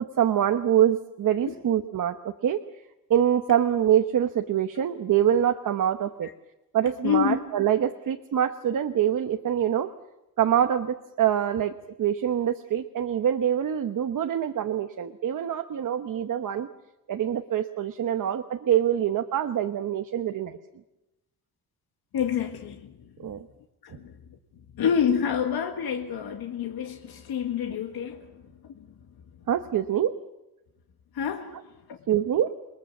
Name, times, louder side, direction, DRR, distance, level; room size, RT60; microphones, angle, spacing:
voice 1, 0.0-2.6 3.1-6.3 6.7-9.9 10.4-16.7 17.1-20.6 23.2-23.5 29.5-30.2 32.1-32.5, right 10 dB, 60° right, 1.1 m, -25 dB
voice 2, 7.0-7.4 22.1-23.1 23.4-23.5 23.8-24.2 24.7-28.3 28.6-28.9 31.1-31.6 31.9-32.0, left 8 dB, 85° left, 1.9 m, -28 dB
28.5 x 21.5 x 7.2 m
wide cardioid pair, 175°, 36 cm